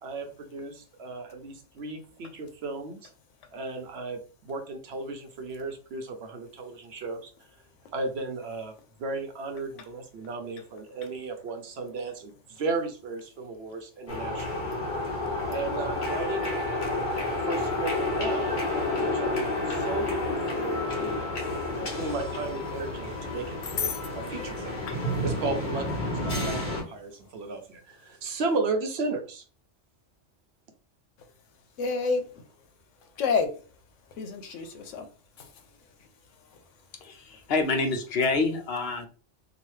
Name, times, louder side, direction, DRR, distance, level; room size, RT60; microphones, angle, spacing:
voice 1, 0.0-3.1 3.5-7.3 7.9-8.7 9.0-14.6 15.5-17.0 17.3-18.6 19.0-21.2 21.8-24.8 25.2-29.4, right 3 dB, 65° right, 0.8 m, -35 dB
sound 1, 14.1-26.8, left 2 dB, 45° left, 1.1 m, -30 dB
voice 2, 23.6-24.0 24.9-25.0 31.8-32.2 33.2-33.5 34.2-35.1 35.4-35.5, left 5 dB, 85° left, 1.0 m, -28 dB
voice 3, 37.0-39.1, left 3 dB, 60° left, 0.8 m, -27 dB
2.9 x 2.3 x 3.1 m
omnidirectional pair, 1.2 m